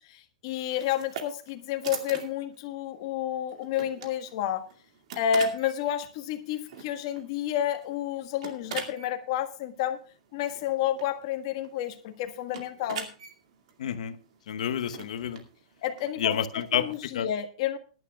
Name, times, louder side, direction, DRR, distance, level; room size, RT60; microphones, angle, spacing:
voice 1, 0.0-4.6 5.2-10.0 10.3-13.1 15.8-16.4 16.7-17.8, left 9 dB, 45° left, 1.5 m, -30 dB
sound 1, 0.6-17.1, right 7 dB, 60° right, 2.2 m, -44 dB
voice 2, 13.8-14.2 14.5-15.4 16.2-16.9 17.1-17.3, left 9 dB, 75° left, 1.0 m, -29 dB
21.0 x 11.0 x 2.4 m
supercardioid pair, 165°, 4 cm